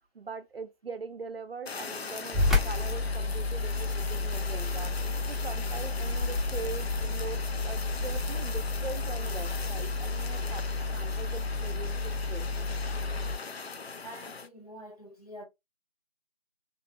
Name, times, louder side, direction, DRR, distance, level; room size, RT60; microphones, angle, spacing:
voice 1, 0.1-5.0 5.3-12.5, right 4 dB, 65° right, 0.5 m, -42 dB
Fire, 1.7-14.5, left 5 dB, 75° left, 0.5 m, -40 dB
sound 1, 2.3-13.4, left 3 dB, ahead, 0.3 m, -31 dB
Rain, 6.0-13.0, left 3 dB, 60° left, 1.1 m, -42 dB
voice 2, 14.0-15.4, equal, 40° left, 0.7 m, -46 dB
2.9 x 2.0 x 2.5 m
figure-of-eight pair, 170°, 31 cm